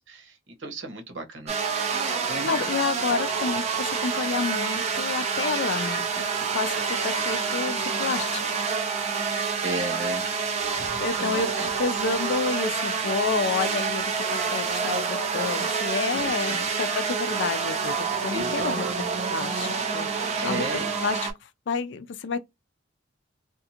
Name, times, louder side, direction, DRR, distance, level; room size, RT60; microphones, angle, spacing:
voice 1, 0.0-1.5 9.2-10.3 10.8-11.7 16.1-16.7 18.3-18.9 20.4-20.9, right 2 dB, 70° right, 1.0 m, -35 dB
sound 1, 1.5-21.3, right 5 dB, 35° right, 0.5 m, -28 dB
voice 2, 2.4-8.6 11.0-14.0 14.3-18.0 18.2-18.9 19.3-21.2 21.7-22.4, left 5 dB, 60° left, 0.4 m, -30 dB
2.5 x 2.4 x 2.7 m
head